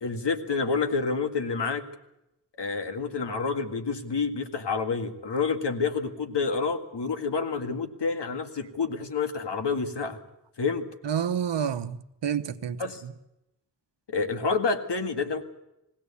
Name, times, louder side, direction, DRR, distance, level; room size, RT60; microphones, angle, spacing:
voice 1, 0.0-1.8 2.6-10.2 10.6-10.8 12.8-13.0 14.1-15.4, left 4 dB, 80° left, 1.9 m, -28 dB
voice 2, 11.0-13.1, right 8 dB, 85° right, 1.0 m, -29 dB
21.5 x 16.5 x 8.5 m
wide cardioid pair, 65°, 41 cm